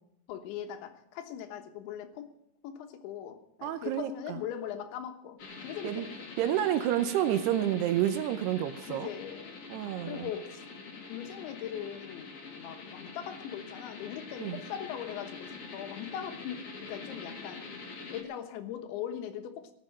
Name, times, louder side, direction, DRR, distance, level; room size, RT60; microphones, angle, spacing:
voice 1, 0.3-2.3 2.6-6.3 8.8-10.6 11.1-17.6 18.1-19.7, left 10 dB, 90° left, 7 dB, 3.6 m, -40 dB
voice 2, 3.6-4.4 5.8-6.1 6.4-9.1 9.7-10.3 14.4-14.6, right 11 dB, 75° right, 10 dB, 2.7 m, -29 dB
sound 1, 5.4-18.2, left 4 dB, 40° left, 2.3 m, -45 dB
17.5 x 7.6 x 8.7 m, 0.75 s
omnidirectional pair, 5.1 m